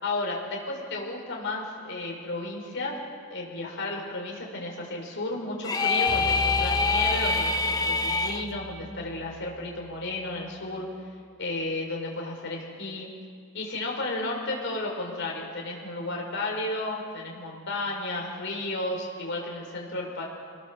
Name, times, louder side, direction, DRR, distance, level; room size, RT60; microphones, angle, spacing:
voice 1, 0.0-2.9 3.3-10.9 11.4-13.1 13.5-20.2, left 2 dB, 65° left, -1 dB, 5.1 m, -33 dB
sound 1, 5.6-8.4, left 4 dB, 20° left, 1.0 m, -25 dB
sound 2, 6.1-10.4, equal, 10° right, 1.7 m, -38 dB
25.5 x 20.0 x 7.1 m, 2.1 s
head